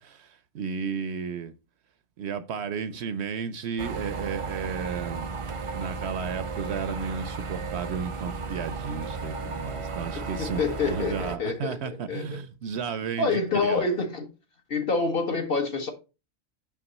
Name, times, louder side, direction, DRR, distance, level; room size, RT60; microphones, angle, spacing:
voice 1, 0.0-1.5 2.2-5.4 5.7-13.8, right 6 dB, 65° right, 0.8 m, -33 dB
sound 1, 3.8-11.4, right 4 dB, 45° right, 0.4 m, -34 dB
voice 2, 10.1-11.8 12.1-12.4 13.2-14.3 14.7-15.9, left 4 dB, 50° left, 1.3 m, -27 dB
5.9 x 5.2 x 4.0 m
omnidirectional pair, 1.3 m